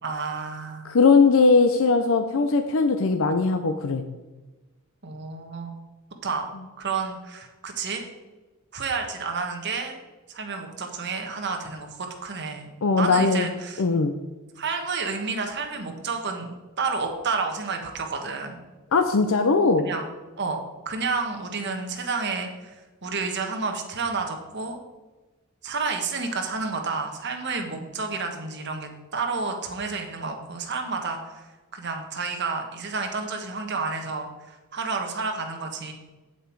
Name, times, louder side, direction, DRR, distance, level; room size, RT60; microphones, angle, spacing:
voice 1, 0.0-0.8 5.0-5.8 6.2-6.5 6.8-8.0 8.7-10.0 10.3-12.7 13.0-13.8 14.6-18.6 19.9-20.0 20.4-20.6 20.8-22.8 23.0-24.8 25.6-31.5 31.7-35.9, right 4 dB, 55° right, 4 dB, 1.5 m, -30 dB
voice 2, 0.8-4.1 12.8-13.5 13.8-14.1 18.9-19.9, left 4 dB, 65° left, 7 dB, 0.6 m, -20 dB
9.0 x 7.9 x 4.7 m, 1.2 s
head